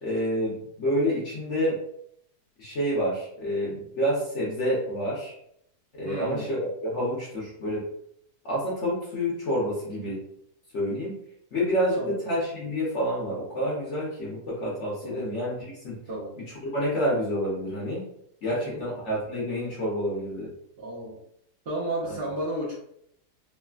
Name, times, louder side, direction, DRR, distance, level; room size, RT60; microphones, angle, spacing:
voice 1, 0.0-1.8 2.6-5.3 5.9-7.8 8.4-10.2 10.7-11.2 11.5-15.6 15.8-16.0 16.7-18.1 18.4-20.5 22.0-22.1, equal, 55° left, -6 dB, 0.9 m, -28 dB
voice 2, 6.0-6.6 9.9-10.1 12.0-12.2 15.0-15.3 16.1-16.3 18.5-18.8 20.8-21.2 21.6-22.7, right 1 dB, 55° right, -8 dB, 0.7 m, -33 dB
3.1 x 2.0 x 2.3 m, 0.72 s
omnidirectional pair, 1.8 m